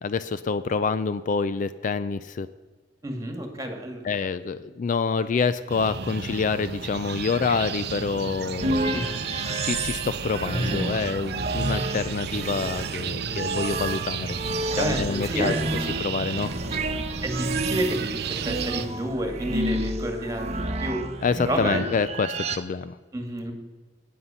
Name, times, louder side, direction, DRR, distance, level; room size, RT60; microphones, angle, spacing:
voice 1, 0.0-2.5 4.0-9.1 9.6-14.4 14.7-15.5 16.0-16.5 21.2-23.0, left 5 dB, 45° left, 13 dB, 0.4 m, -27 dB
voice 2, 3.0-4.0 8.9-9.3 14.8-15.7 17.2-21.0 21.5-22.0 23.1-23.5, right 1 dB, 20° right, 4 dB, 1.9 m, -30 dB
sound 1, 5.7-18.9, right 6 dB, 60° right, 0.6 m, -33 dB
sound 2, 8.6-22.6, right 2 dB, 35° right, 1.0 m, -30 dB
12.5 x 9.4 x 5.7 m, 1.4 s
head